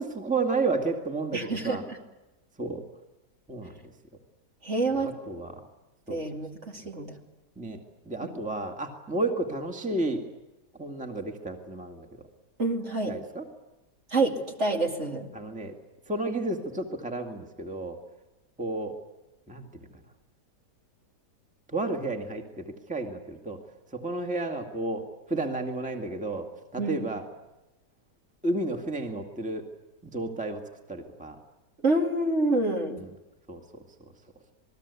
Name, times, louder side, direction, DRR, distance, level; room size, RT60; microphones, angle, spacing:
voice 1, 0.0-1.8 2.6-2.8 3.5-3.9 4.9-5.5 6.1-6.2 7.6-10.2 10.8-12.3 13.1-13.4 15.3-15.7 16.1-18.0 18.6-19.0 19.5-19.9 21.7-23.6 23.9-26.5 26.7-27.2 28.4-29.7 30.0-30.6 30.9-31.4 33.0-33.1 33.5-33.8, right 2 dB, 5° right, 3 dB, 2.0 m, -32 dB
voice 2, 1.3-2.0 4.6-5.1 6.1-7.2 8.2-8.4 12.6-13.1 14.1-15.3 26.8-27.1 31.8-33.0, right 2 dB, 45° right, 2 dB, 2.6 m, -27 dB
28.0 x 20.0 x 8.4 m, 1.0 s
omnidirectional pair, 1.8 m